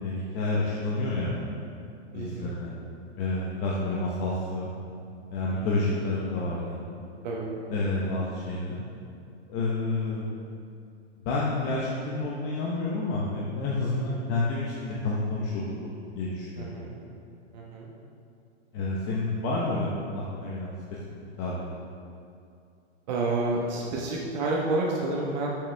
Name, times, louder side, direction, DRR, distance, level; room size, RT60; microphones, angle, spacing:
voice 1, 0.0-1.4 2.1-2.7 3.2-4.7 5.3-6.8 7.7-8.8 9.5-10.3 11.2-16.8 18.7-20.7 21.4-21.6, left 2 dB, 25° left, -5 dB, 0.8 m, -29 dB
voice 2, 2.1-2.5 5.5-5.8 7.2-7.5 13.9-14.3 16.6-16.9 17.5-17.9 23.1-25.5, right 2 dB, 40° right, -3 dB, 1.2 m, -30 dB
12.5 x 6.7 x 3.4 m, 2.5 s
hypercardioid pair, 165°, 34 cm